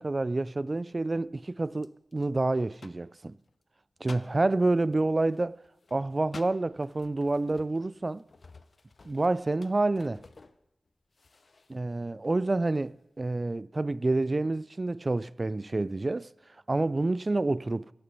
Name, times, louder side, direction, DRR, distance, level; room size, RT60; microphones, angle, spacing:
voice 1, 0.0-3.4 4.0-5.6 5.9-8.2 9.0-10.2 11.7-16.3 16.7-17.9, right 2 dB, 40° right, 0.3 m, -28 dB
sound 1, 0.9-1.3 1.8-3.5 4.0-4.4 4.9-10.9 11.1-11.8 12.2-12.3 12.7-13.0, left 3 dB, 55° left, 0.6 m, -52 dB
17.0 x 6.7 x 5.4 m
cardioid pair, 55°, 0 cm